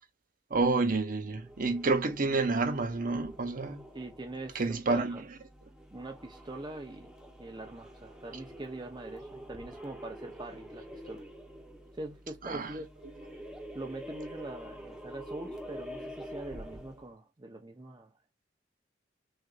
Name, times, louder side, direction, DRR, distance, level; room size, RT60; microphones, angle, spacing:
voice 1, 0.5-3.8 4.5-5.2 12.4-12.7, right 3 dB, 50° right, 0.9 m, -29 dB
sound 1, 1.4-17.1, equal, 5° right, 0.9 m, -47 dB
voice 2, 3.9-5.2 5.9-7.1 7.4-11.2 11.9-12.9 13.7-18.1, right 2 dB, 25° right, 0.6 m, -43 dB
6.4 x 2.6 x 2.4 m
head